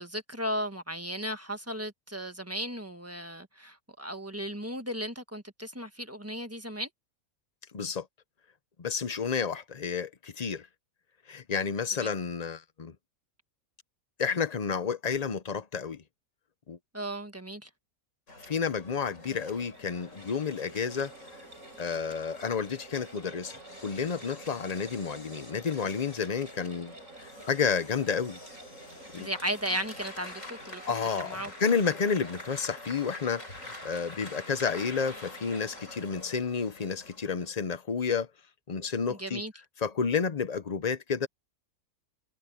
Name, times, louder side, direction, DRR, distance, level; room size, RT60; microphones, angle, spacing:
voice 1, 0.0-6.9 12.0-12.1 16.9-17.7 29.2-30.8 31.2-31.5 39.1-39.5, equal, 10° right, 1.4 m, -35 dB
voice 2, 7.7-8.1 8.8-10.7 11.3-12.9 14.2-16.0 16.7-16.8 18.5-21.1 21.8-26.9 27.2-28.4 29.1-29.3 30.9-38.3 38.7-39.4 39.8-41.3, left 6 dB, 35° left, 0.7 m, -31 dB
sound 1, 18.3-37.5, left 1 dB, 60° left, 7.4 m, -47 dB
sound 2, 19.6-35.8, right 3 dB, 60° right, 6.3 m, -52 dB
omnidirectional pair, 1.5 m